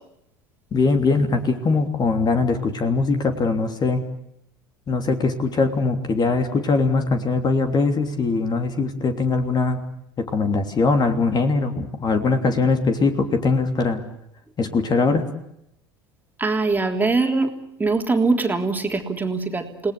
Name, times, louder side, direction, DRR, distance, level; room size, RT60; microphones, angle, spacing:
voice 1, 0.7-4.0 4.9-9.8 10.3-14.0 14.6-15.2, left 3 dB, 35° left, 7 dB, 3.1 m, -21 dB
voice 2, 16.4-17.5 17.8-19.9, right 3 dB, 15° right, 4 dB, 3.3 m, -22 dB
29.0 x 19.5 x 8.4 m, 0.77 s
hypercardioid pair, 75°, 13 cm